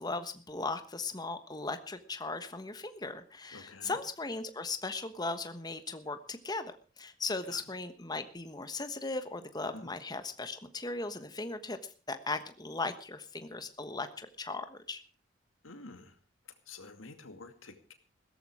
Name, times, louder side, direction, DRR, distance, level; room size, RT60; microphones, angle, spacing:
voice 1, 0.0-11.8 12.1-15.0, left 3 dB, 20° left, 10 dB, 1.2 m, -38 dB
voice 2, 3.5-4.0 7.5-7.6 9.7-9.9 15.6-16.2 16.7-17.9, left 3 dB, 90° left, 7 dB, 2.4 m, -49 dB
16.5 x 13.5 x 4.9 m, 0.39 s
head